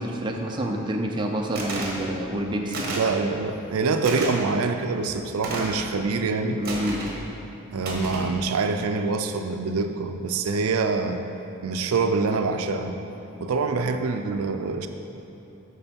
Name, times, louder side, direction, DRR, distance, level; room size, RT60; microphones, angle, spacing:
voice 1, 0.0-3.0 6.6-7.1, right 1 dB, 20° right, 1 dB, 0.6 m, -28 dB
sound 1, 1.6-2.0 2.7-3.1 4.0-4.3 5.4-5.8 6.6-7.2 7.8-8.3, right 2 dB, 45° right, 1.3 m, -31 dB
voice 2, 2.9-6.6 7.7-11.2 11.6-13.0 13.4-14.9, right 4 dB, 80° right, 7 dB, 0.4 m, -25 dB
8.8 x 6.1 x 4.4 m, 2.9 s
head